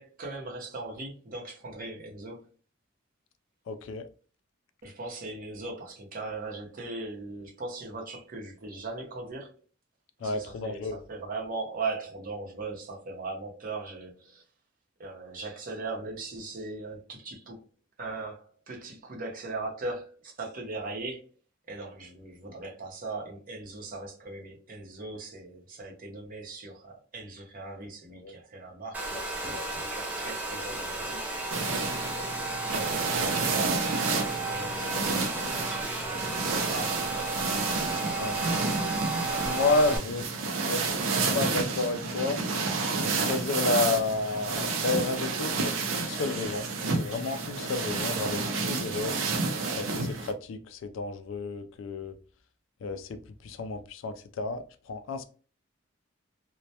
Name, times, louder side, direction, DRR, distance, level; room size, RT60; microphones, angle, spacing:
voice 1, 0.0-2.4 4.8-9.6 10.2-14.4 15.0-17.6 18.0-21.3 21.7-29.1 29.3-31.3 32.6-33.9 34.5-37.5 39.8-39.9, right 3 dB, 45° right, 0.7 m, -39 dB
voice 2, 3.7-4.0 10.2-11.0 28.1-28.3 29.5-29.6 31.7-31.8 38.2-38.4 39.3-40.2 40.6-40.9 41.3-42.4 43.0-49.2 49.7-52.2 52.8-53.2 53.4-55.2, left 3 dB, 70° left, 0.3 m, -31 dB
Domestic sounds home sounds, 28.9-40.0, right 2 dB, 10° right, 0.4 m, -33 dB
sound 1, 31.5-50.3, right 3 dB, 90° right, 0.5 m, -30 dB
2.1 x 2.1 x 2.7 m
head